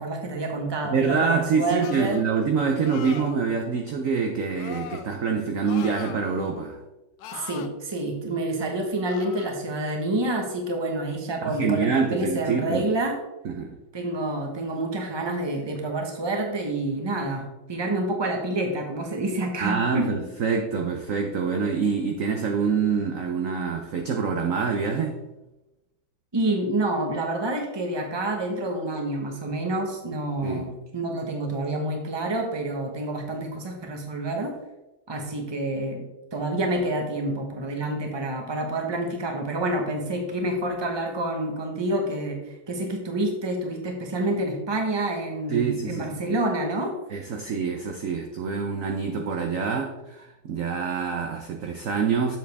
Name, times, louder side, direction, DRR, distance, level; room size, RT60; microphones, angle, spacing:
voice 1, 0.0-2.2 7.3-13.2 13.9-20.1 26.3-34.5 35.1-36.0 36.3-46.9, right 1 dB, 20° right, 2 dB, 0.9 m, -28 dB
voice 2, 0.9-6.8 11.4-12.8 13.4-13.8 19.6-25.2 30.4-30.6 45.5-46.3 47.1-52.4, right 5 dB, 65° right, 3 dB, 0.8 m, -26 dB
sound 1, 1.8-2.3 2.8-3.4 4.6-5.1 5.6-6.5 7.2-7.7 9.1-9.6, left 7 dB, 75° left, 1.2 m, -40 dB
7.5 x 7.4 x 3.5 m, 0.98 s
omnidirectional pair, 2.2 m